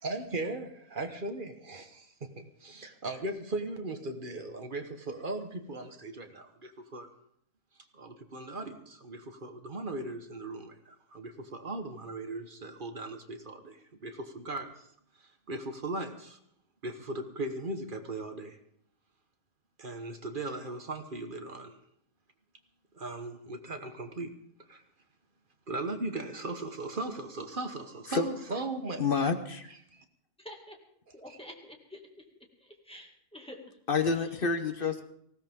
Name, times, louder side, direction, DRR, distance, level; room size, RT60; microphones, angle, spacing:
voice 1, 0.0-7.1 7.9-14.9 15.2-16.4 16.8-18.6 19.8-21.8 22.9-24.3 24.7-24.8 25.7-29.3 29.9-30.0, right 2 dB, 35° right, 6 dB, 1.3 m, -38 dB
voice 2, 29.0-29.7 33.9-35.0, left 5 dB, 40° left, 8 dB, 1.0 m, -28 dB
voice 3, 30.4-30.8 31.1-32.3 32.6-33.8 34.1-34.3, left 1 dB, 5° left, 1 dB, 2.1 m, -48 dB
19.0 x 16.0 x 3.7 m, 0.69 s
omnidirectional pair, 1.6 m